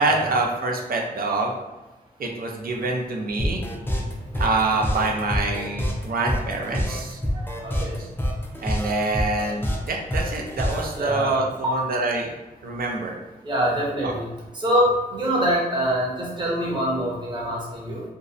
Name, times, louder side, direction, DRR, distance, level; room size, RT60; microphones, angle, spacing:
voice 1, 0.0-1.6 2.2-3.6 4.4-7.2 7.7-7.9 8.6-12.3 12.6-13.1 14.0-14.1, right 3 dB, 75° right, 0 dB, 0.5 m, -26 dB
sound 1, 3.4-11.0, equal, 15° left, 0.4 m, -27 dB
voice 2, 7.6-8.0 10.9-11.9 13.4-14.3 14.5-18.0, equal, 30° right, -4 dB, 0.7 m, -24 dB
2.6 x 2.0 x 2.4 m, 1.1 s
wide cardioid pair, 110°, 15 cm